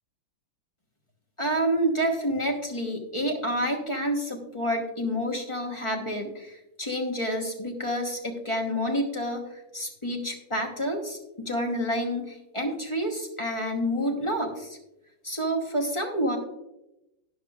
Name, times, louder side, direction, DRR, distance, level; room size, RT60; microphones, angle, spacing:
voice 1, 1.4-9.4 9.7-14.8 15.2-16.4, equal, 25° left, 1 dB, 0.7 m, -28 dB
12.5 x 9.7 x 2.4 m, 0.90 s
omnidirectional pair, 2.2 m